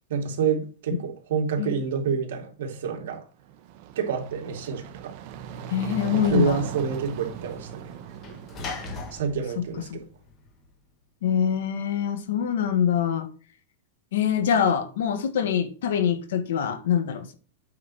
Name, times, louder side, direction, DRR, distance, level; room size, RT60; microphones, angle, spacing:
voice 1, 0.1-3.2 4.0-5.1 6.1-7.9 9.1-10.0, right 6 dB, 70° right, 2.5 m, -28 dB
sound 1, 3.4-9.4, right 9 dB, 45° right, 1.0 m, -38 dB
Sliding door / Slam, 4.9-10.7, left 4 dB, 25° left, 1.4 m, -42 dB
voice 2, 5.7-6.6 9.6-9.7 9.9-10.0 11.2-13.3 14.1-17.3, left 8 dB, 75° left, 1.5 m, -24 dB
8.5 x 4.1 x 6.2 m
supercardioid pair, 165°, 0 cm